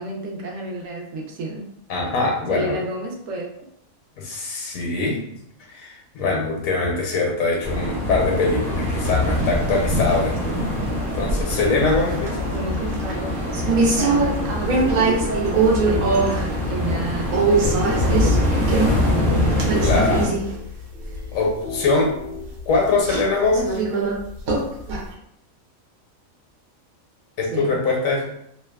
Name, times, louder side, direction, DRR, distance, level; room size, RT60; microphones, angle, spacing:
voice 1, 0.0-1.7 2.5-3.5 12.5-13.3 13.6-19.6 27.5-27.8, right 2 dB, 70° right, 0 dB, 0.9 m, -31 dB
voice 2, 1.9-2.8 4.2-5.2 5.7-10.6 11.1-12.5 19.8-20.3 21.3-22.1 22.7-23.8 27.4-28.3, left 3 dB, 75° left, 0 dB, 1.0 m, -22 dB
sound 1, 7.6-20.3, left 1 dB, 35° right, 0.7 m, -24 dB
sound 2, 9.0-10.5 11.1-11.5 11.9-12.5 12.7-16.5 16.8-16.9 17.3-20.7 21.0-21.3 21.7-21.8 22.6-22.8 23.1-23.2 23.5-24.2 24.5-25.0, right 3 dB, 90° right, 1.1 m, -22 dB
sound 3, 17.7-23.3, left 2 dB, 55° right, 1.1 m, -38 dB
2.6 x 2.1 x 2.2 m, 0.72 s
omnidirectional pair, 1.5 m